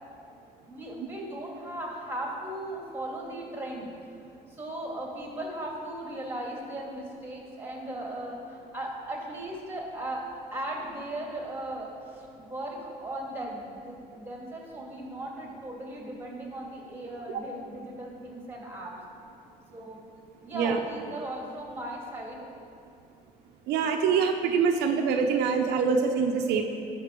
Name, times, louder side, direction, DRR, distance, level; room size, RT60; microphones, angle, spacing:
voice 1, 0.7-3.9 4.5-10.2 10.5-19.0 19.7-20.0 20.4-22.5, right 1 dB, 15° right, -1 dB, 2.2 m, -37 dB
voice 2, 23.7-26.6, right 6 dB, 80° right, 4 dB, 0.7 m, -24 dB
12.5 x 5.9 x 4.5 m, 2.5 s
cardioid pair, 110°, 17 cm